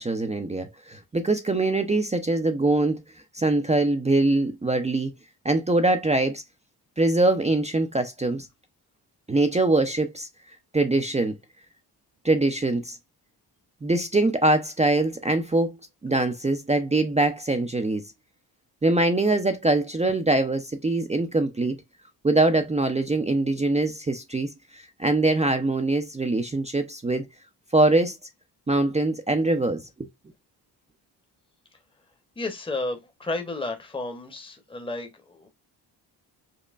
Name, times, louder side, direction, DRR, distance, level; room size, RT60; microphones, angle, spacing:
voice 1, 0.0-3.0 3.3-5.1 5.4-6.4 7.0-8.5 9.3-10.3 10.7-11.3 12.2-13.0 13.8-15.8 16.0-18.0 18.8-21.8 22.2-27.2 27.7-28.1 28.7-30.1, right 2 dB, 15° right, 0.5 m, -23 dB
voice 2, 32.4-35.5, left 2 dB, 10° left, 0.9 m, -32 dB
5.3 x 2.1 x 2.4 m
cardioid pair, 80°, 42 cm